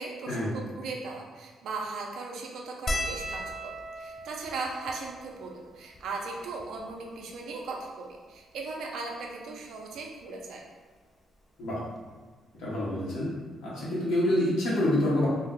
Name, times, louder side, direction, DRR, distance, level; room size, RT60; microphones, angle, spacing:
voice 1, 0.0-10.6, right 3 dB, 70° right, 0 dB, 0.5 m, -38 dB
sound 1, 2.9-7.5 8.2-8.3 8.5-8.7 10.0-10.2 11.6-11.7 12.0-12.2, equal, 35° left, 0.3 m, -38 dB
voice 2, 12.6-13.3 13.6-15.3, left 1 dB, 85° left, -8 dB, 1.0 m, -27 dB
2.7 x 2.1 x 3.7 m, 1.4 s
cardioid pair, 90°, 0 cm